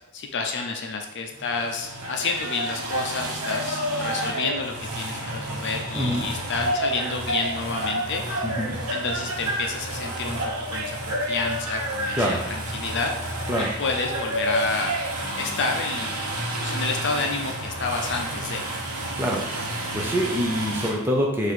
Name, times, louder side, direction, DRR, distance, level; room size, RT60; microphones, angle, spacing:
voice 1, 0.1-8.2 8.9-10.4 10.7-13.1 13.8-14.9 15.4-16.2 16.6-18.7, left 4 dB, 50° left, 3 dB, 0.6 m, -29 dB
sound 1, 1.3-20.9, right 1 dB, 75° right, 1.1 m, -30 dB
voice 2, 6.0-6.3 8.4-8.8 12.1-12.4 13.5-13.7 19.1-19.7 19.9-21.5, equal, 10° right, -1 dB, 0.6 m, -25 dB
4.6 x 2.6 x 4.2 m, 0.89 s
head